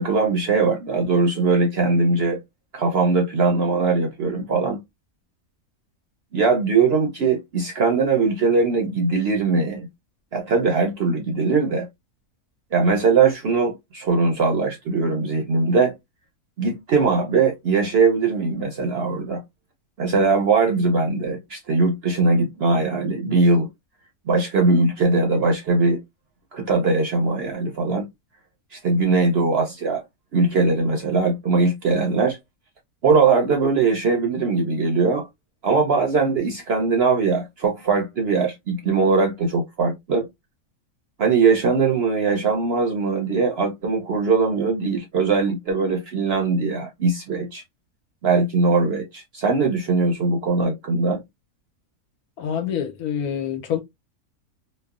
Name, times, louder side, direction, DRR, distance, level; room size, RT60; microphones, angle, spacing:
voice 1, 0.0-2.4 2.7-4.8 6.3-9.9 10.3-11.9 12.7-15.9 16.6-19.4 20.0-23.7 24.3-26.0 26.5-28.1 28.7-30.0 30.3-32.4 33.0-35.3 35.6-40.3 41.2-47.6 48.2-51.2, right 4 dB, 60° right, 0.7 m, -20 dB
voice 2, 28.9-29.2 52.4-53.8, left 8 dB, 80° left, 1.2 m, -27 dB
3.1 x 2.0 x 2.3 m
omnidirectional pair, 1.6 m